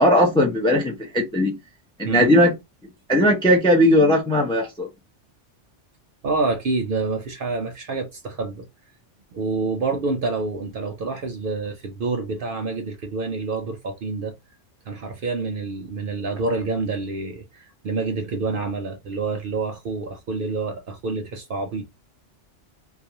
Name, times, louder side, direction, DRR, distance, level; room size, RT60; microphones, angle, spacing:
voice 1, 0.0-1.6 2.0-2.5 3.1-4.9, left 1 dB, 5° left, 0.4 m, -18 dB
voice 2, 6.2-8.7 9.3-14.3 14.9-21.8, right 3 dB, 60° right, 0.6 m, -27 dB
2.3 x 2.2 x 2.8 m
omnidirectional pair, 1.2 m